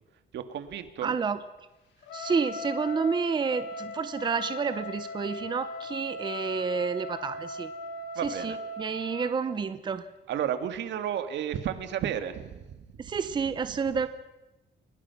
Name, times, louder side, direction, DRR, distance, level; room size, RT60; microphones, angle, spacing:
voice 1, 0.3-1.2 8.2-8.6 9.0-9.1 10.3-13.1, right 9 dB, 75° right, 9 dB, 1.9 m, -33 dB
voice 2, 1.0-1.4 2.1-7.7 8.2-10.1 13.0-14.1, right 5 dB, 25° right, 12 dB, 0.7 m, -30 dB
Trumpet, 2.0-9.4, left 3 dB, 85° left, 5.2 m, -38 dB
30.0 x 18.5 x 5.9 m, 1.0 s
cardioid pair, 170°, 19 cm